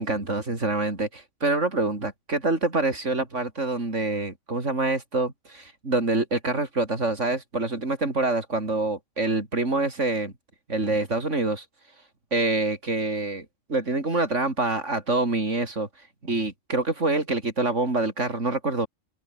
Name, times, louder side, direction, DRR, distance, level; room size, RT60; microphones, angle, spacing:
voice 1, 0.0-10.3 10.7-11.6 12.3-15.9 16.2-18.9, right 2 dB, 65° right, 4.6 m, -26 dB
open air
omnidirectional pair, 1.4 m